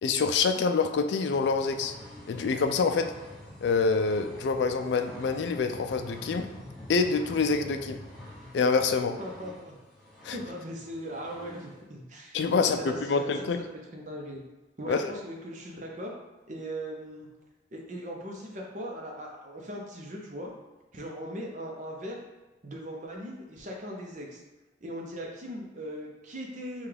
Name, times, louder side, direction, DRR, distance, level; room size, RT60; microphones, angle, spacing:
voice 1, 0.0-1.9 2.3-3.1 3.6-6.5 6.9-8.0 8.5-9.1 10.2-10.4 12.3-13.6 14.9-15.1, left 4 dB, 70° left, 7 dB, 0.3 m, -26 dB
sound 1, 1.3-11.8, left 1 dB, ahead, 1.1 m, -47 dB
voice 2, 9.1-9.8 10.3-13.5 13.7-14.4 14.8-16.1 16.5-17.3 17.7-20.5 20.9-22.2 22.6-24.4 24.8-26.9, equal, 40° right, 0 dB, 0.7 m, -39 dB
5.7 x 2.4 x 3.4 m, 1.2 s
head